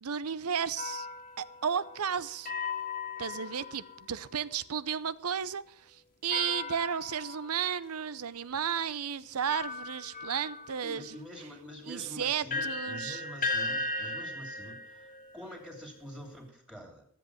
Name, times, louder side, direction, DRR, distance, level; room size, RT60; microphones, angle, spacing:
voice 1, 0.0-1.1 1.4-2.5 3.2-11.2 11.9-13.2, right 7 dB, 80° right, 0.7 m, -33 dB
sound 1, 0.8-4.3 6.3-7.8 8.5-8.6 9.5-16.4, left 3 dB, 35° left, 1.7 m, -38 dB
voice 2, 10.8-17.1, equal, 5° right, 3.0 m, -46 dB
13.5 x 7.8 x 7.9 m
head